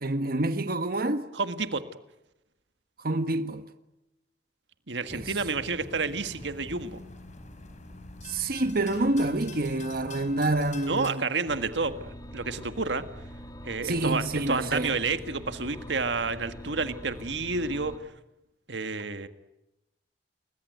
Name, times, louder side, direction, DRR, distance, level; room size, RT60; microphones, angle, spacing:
voice 1, 0.0-1.2 3.0-3.6 5.1-5.3 8.2-11.2 13.8-14.9, right 2 dB, 55° right, 1.6 m, -27 dB
voice 2, 1.3-1.8 4.9-7.0 10.9-13.0 13.6-18.0 18.7-19.3, right 4 dB, 80° right, 1.7 m, -30 dB
sound 1, 5.1-11.1, left 2 dB, 45° left, 4.6 m, -45 dB
sound 2, 11.5-18.0, equal, 20° left, 2.1 m, -44 dB
30.0 x 21.5 x 9.4 m
head